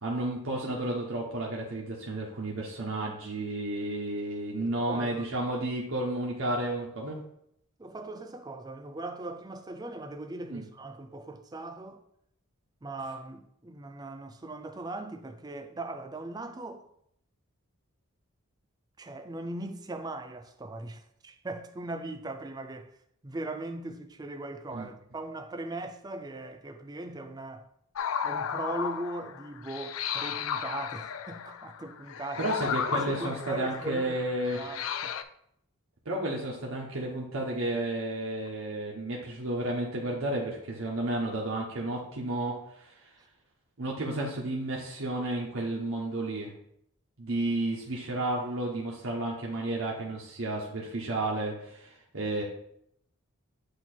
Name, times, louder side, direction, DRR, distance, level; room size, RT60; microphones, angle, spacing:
voice 1, 0.0-7.2 10.5-10.6 24.7-24.9 32.4-34.6 36.0-43.0 43.8-46.5 47.2-52.4, right 1 dB, 65° right, 1.0 m, -32 dB
voice 2, 4.9-5.3 7.8-12.0 12.8-16.8 19.0-22.9 23.2-27.7 28.2-32.5 33.1-35.1, right 2 dB, 20° right, 0.4 m, -39 dB
sound 1, 28.0-35.2, left 7 dB, 70° left, 0.4 m, -34 dB
8.1 x 2.9 x 4.4 m
head